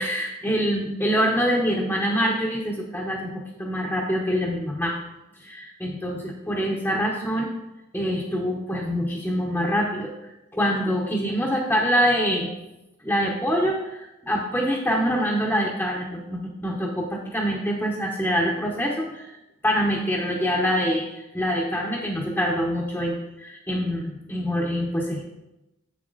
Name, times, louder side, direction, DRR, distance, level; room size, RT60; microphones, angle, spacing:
voice 1, 0.0-5.0 5.4-7.5 7.9-12.5 13.0-19.3 19.6-25.2, equal, 10° left, -2 dB, 0.8 m, -25 dB
7.2 x 7.1 x 3.9 m, 0.97 s
head